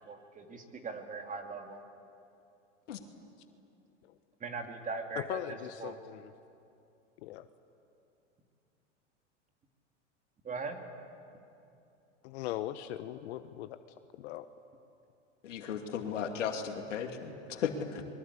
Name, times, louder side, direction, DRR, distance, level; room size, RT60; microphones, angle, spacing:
voice 1, 0.1-1.8 4.4-5.4 5.8-5.9 10.4-10.8, right 4 dB, 20° right, 4 dB, 2.7 m, -40 dB
voice 2, 5.1-6.3 7.2-7.5 12.2-13.8 14.2-14.5, left 13 dB, 65° left, 10 dB, 1.0 m, -39 dB
voice 3, 15.4-18.0, left 7 dB, 85° left, 4 dB, 2.7 m, -35 dB
25.5 x 22.5 x 8.3 m, 2.7 s
hypercardioid pair, 115°, 36 cm